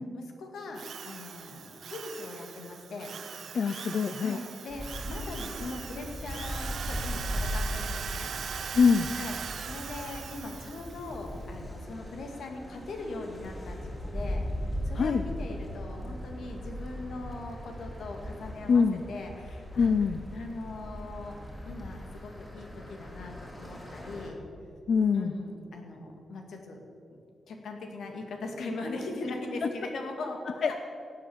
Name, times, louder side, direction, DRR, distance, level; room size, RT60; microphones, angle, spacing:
voice 1, 0.1-3.1 4.2-8.3 9.1-19.9 20.3-21.4 21.7-24.4 25.1-26.8 27.1-27.2 27.5-30.8, left 2 dB, 85° left, 3 dB, 2.1 m, -40 dB
Drill, 0.8-11.2, right 7 dB, 75° right, 0.6 m, -40 dB
voice 2, 3.5-4.4 8.7-9.1 15.0-15.2 18.7-19.0 19.8-20.2 24.9-25.3 29.6-29.7 30.6-30.7, left 5 dB, 60° left, 10 dB, 0.5 m, -24 dB
sound 1, 4.7-24.3, equal, 15° left, 3.2 m, -38 dB
16.5 x 7.7 x 7.3 m, 2.6 s
wide cardioid pair, 115°, 0 cm